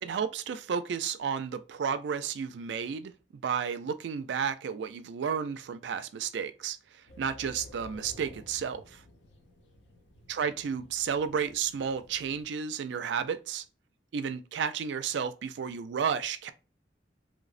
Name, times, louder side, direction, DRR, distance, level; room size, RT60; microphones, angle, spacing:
voice 1, 0.0-9.0 10.3-13.6 14.1-16.5, right 7 dB, 70° right, 0.3 m, -32 dB
sound 1, 7.1-12.5, left 1 dB, 85° left, 0.6 m, -53 dB
3.1 x 2.0 x 2.4 m
head